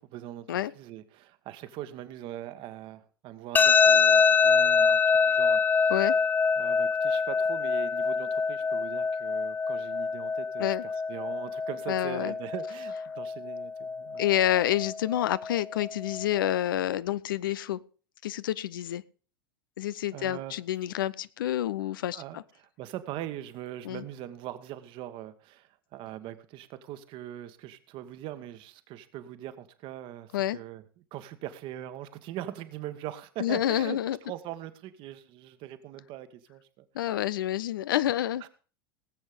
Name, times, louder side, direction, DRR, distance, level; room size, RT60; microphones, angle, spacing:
voice 1, 0.0-5.9 6.6-14.3 20.1-20.5 22.1-37.2 38.4-38.5, right 13 dB, 45° right, 11 dB, 1.3 m, -41 dB
sound 1, 3.6-16.5, left 5 dB, 15° left, 0.6 m, -25 dB
voice 2, 11.9-12.3 14.2-17.8 18.2-19.0 19.8-22.4 23.8-24.0 30.3-30.6 33.4-34.2 36.9-38.4, left 12 dB, 70° left, 19 dB, 0.5 m, -28 dB
18.0 x 8.0 x 5.0 m, 0.38 s
figure-of-eight pair, 85°, 12 cm